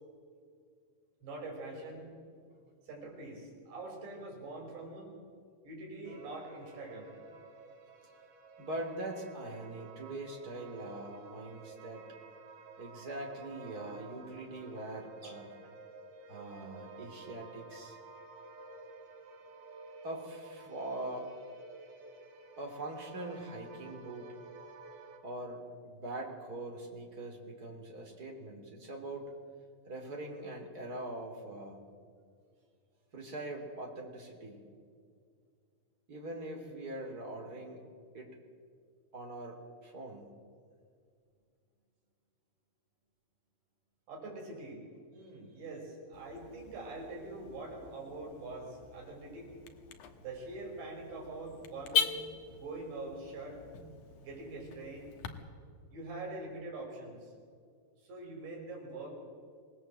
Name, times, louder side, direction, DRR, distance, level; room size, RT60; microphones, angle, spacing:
voice 1, 1.2-2.1 2.8-5.2 5.6-7.1 44.1-44.9 45.1-49.5 50.2-52.1 52.5-53.6 54.2-55.1 55.9-57.3 58.0-59.1, right 2 dB, 60° right, -1 dB, 7.5 m, -44 dB
sound 1, 6.1-25.2, right 3 dB, 80° right, 5.0 m, -52 dB
voice 2, 8.6-12.1 12.8-15.5 16.3-18.0 20.0-21.3 22.6-24.3 25.2-29.3 29.9-31.8 33.1-34.6 36.1-37.8 38.1-38.3 39.1-40.3, right 1 dB, 25° right, 1 dB, 2.5 m, -42 dB
Car / Alarm, 46.1-55.3, left 7 dB, 85° left, 1.7 m, -40 dB
26.0 x 19.0 x 7.6 m, 2.2 s
omnidirectional pair, 5.8 m